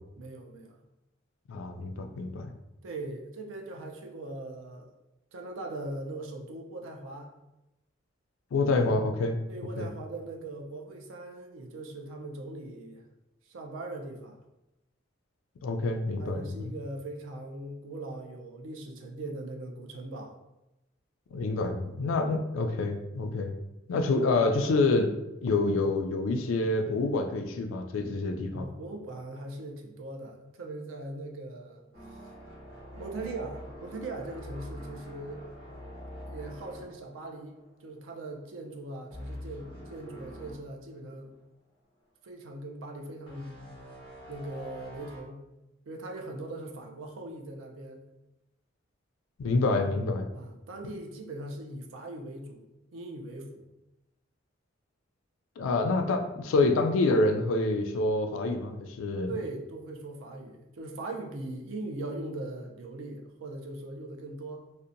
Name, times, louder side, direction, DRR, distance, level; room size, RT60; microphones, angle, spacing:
voice 1, 0.2-0.8 1.9-2.2 2.8-4.9 5.3-7.3 9.5-13.0 13.5-14.4 16.2-20.4 28.5-31.8 32.9-35.5 36.2-41.3 42.2-43.6 44.3-45.4 45.9-48.1 50.3-53.7 59.3-64.6, right 2 dB, 70° right, 2 dB, 0.4 m, -40 dB
voice 2, 1.5-2.5 8.5-9.4 9.8-9.9 15.6-16.5 21.3-23.5 23.9-25.1 25.4-28.7 49.4-50.3 55.6-59.3, left 2 dB, 75° left, 5 dB, 0.3 m, -27 dB
sound 1, 31.9-38.0 38.3-38.6 39.1-40.6 41.1-41.2 43.3-45.2, equal, 30° right, 1.2 m, -45 dB
2.7 x 2.1 x 2.5 m, 0.94 s
head